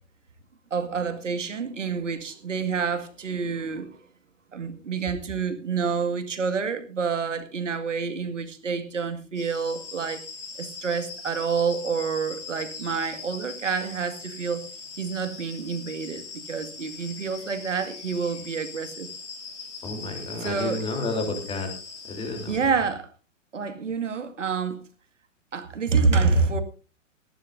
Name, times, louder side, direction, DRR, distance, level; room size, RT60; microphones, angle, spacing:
voice 1, 0.7-4.0 4.5-10.2 10.6-14.6 15.0-19.1 20.3-20.8 22.5-23.1 23.5-24.8 25.5-26.6, right 5 dB, 70° right, 2.1 m, -28 dB
sound 1, 9.3-22.6, left 4 dB, 60° left, 4.5 m, -41 dB
voice 2, 19.8-21.7 22.1-22.6, left 2 dB, 15° left, 3.5 m, -31 dB
18.5 x 14.0 x 2.7 m
figure-of-eight pair, 115°, 39 cm